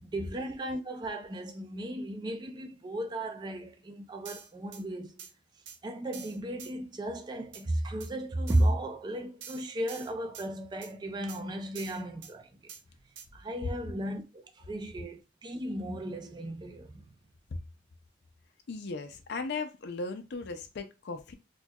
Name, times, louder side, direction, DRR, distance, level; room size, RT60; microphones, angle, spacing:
voice 1, 0.0-5.2 5.8-12.5 13.3-17.1, right 1 dB, 20° right, 0.4 m, -34 dB
sound 1, 4.2-4.8 5.2-5.3 5.7-5.8 6.1-6.7 7.5-7.6 8.0-8.1 8.5-8.7 9.4-10.5 10.8-10.9 11.3-11.4 11.7-12.3 12.7-12.8 13.2-13.3, right 7 dB, 65° right, 0.6 m, -46 dB
voice 2, 18.7-21.3, left 3 dB, 60° left, 0.4 m, -37 dB
4.3 x 2.2 x 2.3 m
head